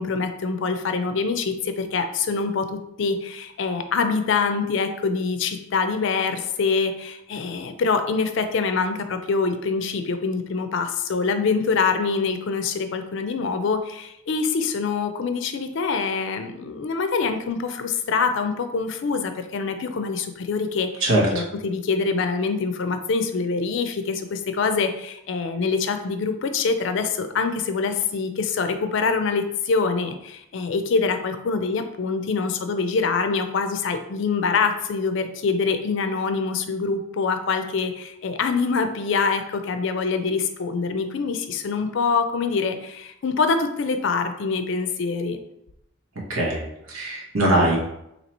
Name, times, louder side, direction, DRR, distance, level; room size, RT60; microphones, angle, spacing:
voice 1, 0.0-45.4, left 4 dB, 60° left, 8 dB, 0.4 m, -25 dB
voice 2, 21.0-21.4 46.3-46.6 46.9-47.8, right 1 dB, 85° right, -2 dB, 1.0 m, -21 dB
2.9 x 2.8 x 4.1 m, 0.81 s
head